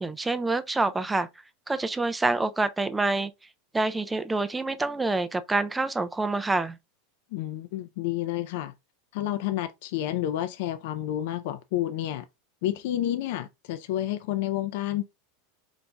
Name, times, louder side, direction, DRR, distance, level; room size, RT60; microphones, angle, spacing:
voice 1, 0.0-1.3 1.7-3.3 3.7-6.8, right 3 dB, 10° right, 0.3 m, -27 dB
voice 2, 7.3-8.7 9.1-12.2 12.6-15.0, left 13 dB, 65° left, 0.5 m, -30 dB
4.6 x 4.0 x 2.2 m
supercardioid pair, 150°, 0 cm